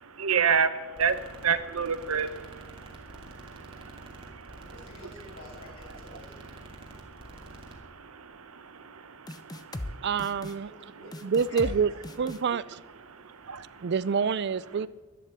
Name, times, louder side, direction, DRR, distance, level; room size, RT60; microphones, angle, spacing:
voice 1, 0.0-4.7 6.7-10.1 13.1-13.9, right 6 dB, 85° right, 1.0 m, -31 dB
sound 1, 1.0-7.7, right 1 dB, 25° right, 2.4 m, -48 dB
voice 2, 4.6-6.4 10.3-11.1 11.5-11.7 12.0-12.2, left 2 dB, 65° left, 5.7 m, -49 dB
sound 2, 9.3-9.9 10.2-10.5 11.1-11.8 12.0-12.4, left 1 dB, 20° left, 0.7 m, -37 dB
voice 3, 10.0-10.7 11.2-11.9 12.2-12.8 13.8-14.9, right 6 dB, 55° right, 0.4 m, -27 dB
12.0 x 12.0 x 8.0 m
head